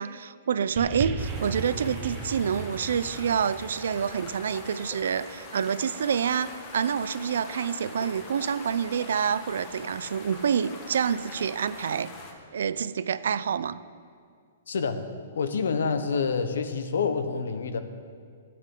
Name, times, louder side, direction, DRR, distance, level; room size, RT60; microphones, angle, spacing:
voice 1, 0.0-12.1 12.5-13.8, right 7 dB, 75° right, 16 dB, 0.4 m, -27 dB
sound 1, 0.8-5.3 6.1-6.2, right 5 dB, 25° right, 0.7 m, -37 dB
sound 2, 1.2-12.3, left 3 dB, 25° left, 1.3 m, -43 dB
voice 2, 14.7-15.0 15.4-17.8, left 5 dB, 85° left, 9 dB, 1.0 m, -27 dB
15.0 x 9.5 x 3.8 m, 2.2 s
hypercardioid pair, 170°, 0 cm